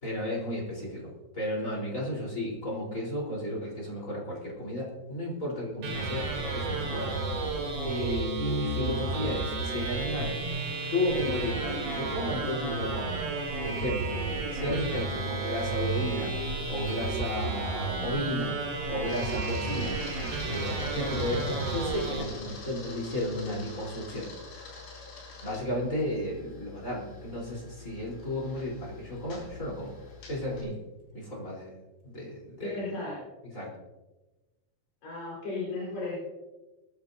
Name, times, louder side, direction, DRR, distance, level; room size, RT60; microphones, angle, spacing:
voice 1, 0.0-7.5 7.8-10.4 10.9-13.2 13.6-14.2 14.5-16.3 16.7-18.6 18.9-20.0 20.4-24.3 24.6-24.8 25.4-30.0 30.3-30.8 31.1-31.7 32.0-32.8 33.4-33.7, left 1 dB, 20° left, -4 dB, 4.0 m, -33 dB
sound 1, 5.8-22.2, right 3 dB, 60° right, 4.9 m, -32 dB
Camera, 15.0-30.6, left 4 dB, 75° left, 5.8 m, -47 dB
voice 2, 32.6-33.2 35.0-36.2, left 3 dB, 50° left, -6 dB, 6.3 m, -35 dB
22.0 x 13.5 x 2.8 m, 1.1 s
omnidirectional pair, 5.1 m